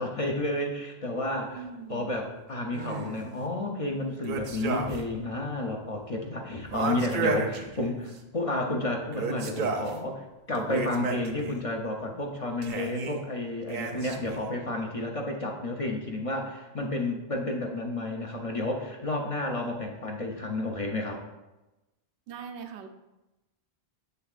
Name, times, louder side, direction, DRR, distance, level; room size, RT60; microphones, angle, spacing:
voice 1, 0.0-1.6 1.9-10.2 10.5-21.2, left 2 dB, 40° left, 1 dB, 0.6 m, -31 dB
voice 2, 1.5-2.2 22.3-22.9, right 6 dB, 85° right, 7 dB, 0.9 m, -41 dB
sound 1, 2.7-3.3 4.2-5.2 5.4-5.5 6.7-8.2 9.1-10.0 10.5-11.6 12.6-13.2 13.7-14.4, right 4 dB, 55° right, 0.7 m, -32 dB
7.0 x 6.7 x 2.4 m, 1.0 s
omnidirectional pair, 1.1 m